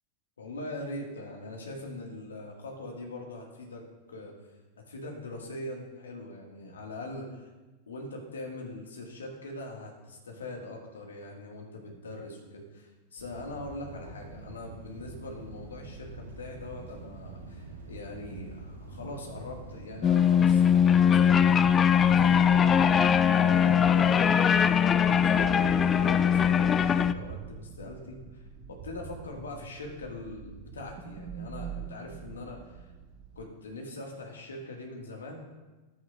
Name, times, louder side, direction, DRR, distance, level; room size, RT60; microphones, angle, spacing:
voice 1, 0.4-3.8 4.1-4.3 4.9-7.5 7.9-28.4 28.7-32.9 33.4-35.4, left 2 dB, 70° left, 1 dB, 2.0 m, -42 dB
sound 1, 13.2-26.5, right 3 dB, 60° right, 2.9 m, -46 dB
sound 2, 20.0-27.1, left 8 dB, 25° left, 0.4 m, -21 dB
sound 3, 21.1-33.5, right 7 dB, 40° right, 0.8 m, -45 dB
13.5 x 10.0 x 2.6 m, 1.2 s
figure-of-eight pair, 90°, 0 cm